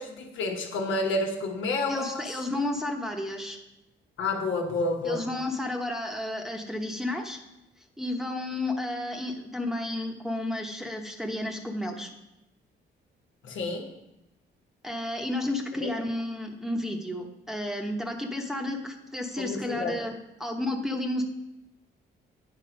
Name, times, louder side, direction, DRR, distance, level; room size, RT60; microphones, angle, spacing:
voice 1, 0.0-2.3 4.2-5.2 13.4-13.9 15.8-15.9 19.4-20.0, left 2 dB, 75° left, 2 dB, 1.3 m, -29 dB
voice 2, 1.9-3.6 5.0-7.4 8.0-12.1 14.8-21.2, left 1 dB, ahead, 1 dB, 1.0 m, -32 dB
8.6 x 4.5 x 5.2 m, 0.93 s
cardioid pair, 90°, 20 cm